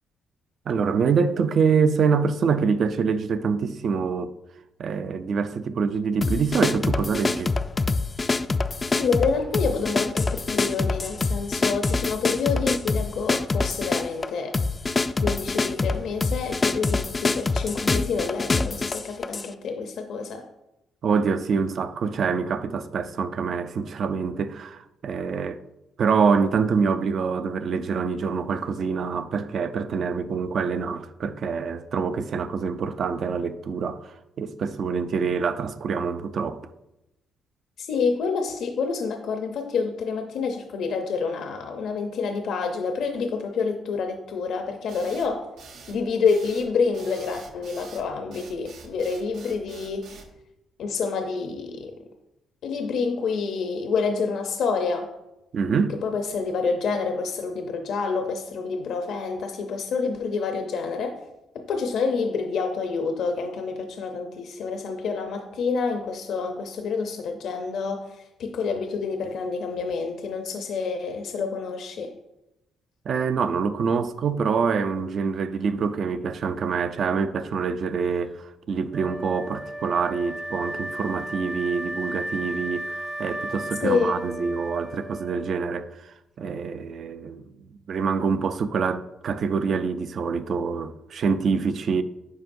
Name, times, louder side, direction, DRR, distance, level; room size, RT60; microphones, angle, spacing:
voice 1, 0.7-4.3 4.8-7.5 21.0-25.6 26.0-36.6 55.5-56.0 73.1-92.0, right 5 dB, 55° right, 0.4 m, -25 dB
sound 1, 6.2-19.5, left 3 dB, 30° left, 0.3 m, -25 dB
voice 2, 9.0-14.6 15.2-20.4 37.8-45.5 45.9-50.1 50.8-51.9 52.6-55.1 56.0-61.2 61.5-72.1 83.8-84.2, left 5 dB, 75° left, 0.6 m, -28 dB
sound 2, 44.9-50.3, right 4 dB, 85° right, 1.0 m, -46 dB
Wind instrument woodwind instrument, 78.9-85.9, right 1 dB, 15° right, 0.6 m, -35 dB
9.3 x 5.5 x 2.6 m
cardioid pair, 90°, 0 cm